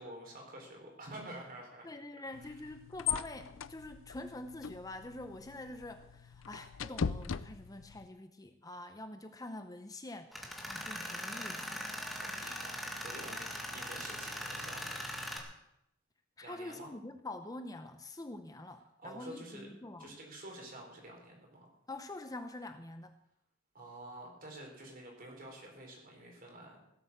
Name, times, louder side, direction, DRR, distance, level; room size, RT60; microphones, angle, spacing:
voice 1, 0.0-1.9 2.2-2.6 12.1-15.0 16.4-16.9 19.0-19.7 20.0-21.7 23.7-26.8, right 1 dB, 45° right, 0 dB, 4.6 m, -49 dB
voice 2, 1.8-12.6 16.4-20.2 21.9-23.1, left 2 dB, 20° left, 8 dB, 0.6 m, -46 dB
sound 1, 2.3-8.1, left 7 dB, 70° left, 0.5 m, -40 dB
Tools, 10.3-15.4, equal, ahead, 2.0 m, -41 dB
16.5 x 8.2 x 7.3 m, 0.82 s
head